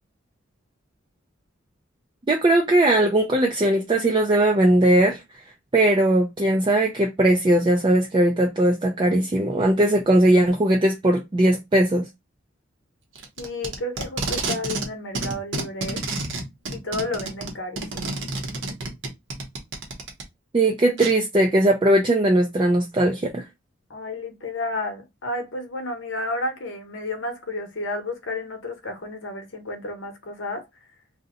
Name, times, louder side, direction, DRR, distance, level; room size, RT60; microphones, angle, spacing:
voice 1, 2.3-5.2 5.7-12.1 20.5-23.4, right 1 dB, 25° right, 0.4 m, -19 dB
Packing tape duct tape, 13.2-14.9 15.2-20.2 21.0-21.1, right 3 dB, 70° right, 0.8 m, -29 dB
voice 2, 13.4-16.0 16.7-18.2 23.9-30.6, left 2 dB, 70° left, 0.9 m, -31 dB
2.7 x 2.1 x 3.6 m
head